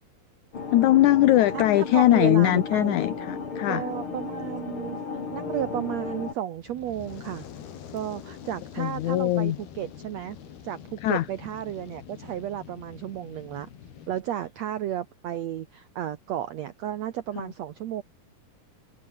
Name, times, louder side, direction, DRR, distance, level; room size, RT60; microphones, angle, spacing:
sound 1, 0.5-6.3, left 5 dB, 35° left, 3.8 m, -34 dB
voice 1, 0.7-3.8 8.8-9.6 11.0-11.3, left 14 dB, 70° left, 2.0 m, -21 dB
voice 2, 1.5-3.0 3.7-5.0 5.3-7.5 7.9-10.4 10.6-13.7 14.1-18.0, right 11 dB, 75° right, 1.6 m, -33 dB
Fire, 6.6-14.2, left 9 dB, 90° left, 4.7 m, -45 dB
open air
omnidirectional pair, 4.3 m